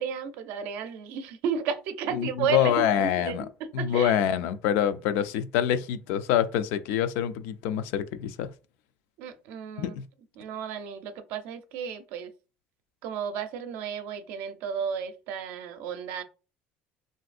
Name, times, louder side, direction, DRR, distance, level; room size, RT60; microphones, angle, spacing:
voice 1, 0.0-4.2 9.2-9.9 10.4-12.3 13.0-16.2, right 7 dB, 75° right, 0.5 m, -33 dB
voice 2, 2.1-3.5 3.7-8.5 9.8-10.0, left 10 dB, 85° left, 0.4 m, -26 dB
3.3 x 2.6 x 2.4 m
cardioid pair, 160°, 4 cm